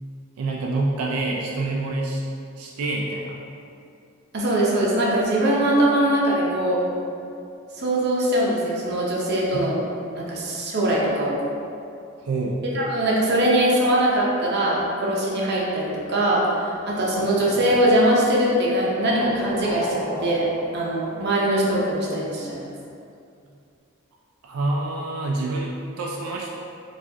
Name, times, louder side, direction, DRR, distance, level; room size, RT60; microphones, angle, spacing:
voice 1, 0.4-2.2 2.6-3.4 9.5-9.7 12.2-12.6 24.4-26.5, right 2 dB, 90° right, -2 dB, 0.4 m, -27 dB
voice 2, 4.3-6.8 7.7-9.8 10.1-11.3 12.7-20.5 20.7-22.7, right 1 dB, 50° right, -4 dB, 0.7 m, -22 dB
sound 1, 17.1-18.4 18.7-18.8 19.0-21.2, equal, 45° left, 0.5 m, -33 dB
4.6 x 2.4 x 2.7 m, 2.5 s
head